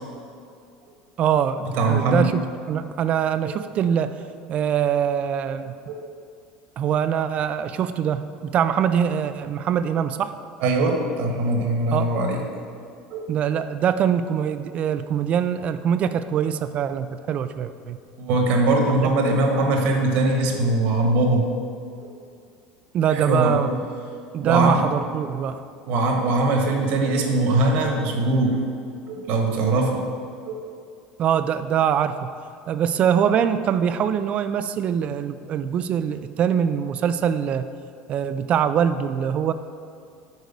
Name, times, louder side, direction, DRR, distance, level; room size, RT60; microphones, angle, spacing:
voice 1, 1.2-4.2 4.5-5.7 6.8-10.3 11.9-12.1 13.3-18.0 18.9-19.1 22.9-23.8 24.3-25.6 31.2-32.3 32.7-37.7 38.1-39.5, right 8 dB, 40° right, 11 dB, 0.4 m, -23 dB
voice 2, 1.8-2.3 5.9-6.0 10.6-12.4 13.1-13.2 18.2-21.5 22.0-22.1 23.1-23.5 24.4-24.8 25.9-28.6 29.1-30.0 30.4-30.6, right 2 dB, 65° right, 2 dB, 1.5 m, -21 dB
6.5 x 4.7 x 6.8 m, 2.3 s
supercardioid pair, 115°, 3 cm